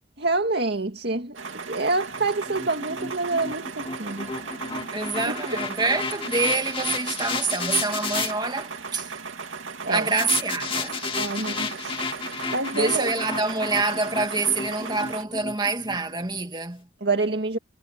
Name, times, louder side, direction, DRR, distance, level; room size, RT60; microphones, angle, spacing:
voice 1, 0.2-4.3 5.2-5.3 9.8-10.1 11.2-12.0 12.5-13.1 17.0-17.6, right 3 dB, 55° right, 2.1 m, -27 dB
sound 1, 1.4-15.2, right 5 dB, 80° right, 2.4 m, -37 dB
sound 2, 2.1-8.3 10.2-16.4, left 4 dB, 25° left, 2.2 m, -32 dB
voice 2, 4.9-9.1 9.9-11.0 12.7-16.9, right 3 dB, 20° right, 2.2 m, -26 dB
head